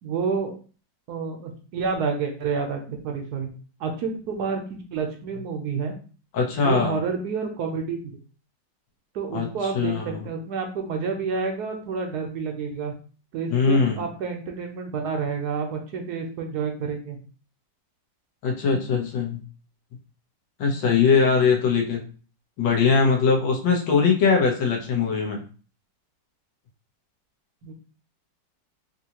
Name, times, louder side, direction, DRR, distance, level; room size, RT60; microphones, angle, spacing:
voice 1, 0.0-0.5 1.1-3.5 3.8-6.0 6.5-8.0 9.1-12.9 13.3-17.2 27.6-27.7, right 5 dB, 70° right, 3 dB, 1.1 m, -29 dB
voice 2, 6.3-6.9 9.3-9.5 9.7-10.2 13.5-14.0 18.4-19.4 20.6-22.0 22.6-25.4, left 5 dB, 85° left, 1 dB, 1.6 m, -21 dB
3.8 x 2.7 x 2.8 m, 0.38 s
omnidirectional pair, 1.9 m